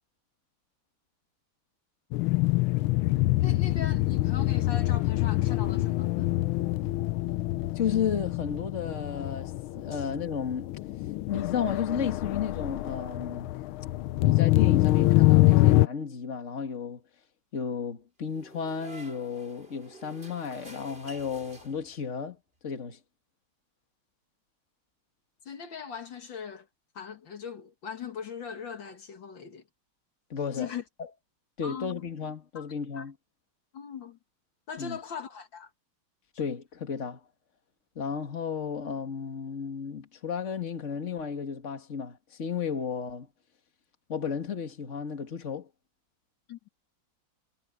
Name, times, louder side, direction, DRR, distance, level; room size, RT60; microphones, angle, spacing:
sound 1, 2.1-15.9, left 18 dB, 85° left, 1.4 m, -25 dB
voice 1, 3.4-6.3 9.9-10.0 25.5-26.7 26.9-29.6 30.5-30.8 31.6-32.0 32.6-32.7 33.0-33.1 33.7-34.2 34.7-35.7 46.5-46.6, left 7 dB, 65° left, 2.3 m, -40 dB
voice 2, 7.7-10.8 11.3-13.5 14.2-17.0 17.5-22.4 22.6-23.0 30.3-30.7 31.0-31.1 31.6-33.1 34.8-35.0 36.4-37.2 38.0-43.3 44.1-45.7, left 7 dB, 35° left, 2.1 m, -33 dB
sound 2, 18.3-22.2, right 2 dB, 25° right, 4.8 m, -49 dB
omnidirectional pair, 2.2 m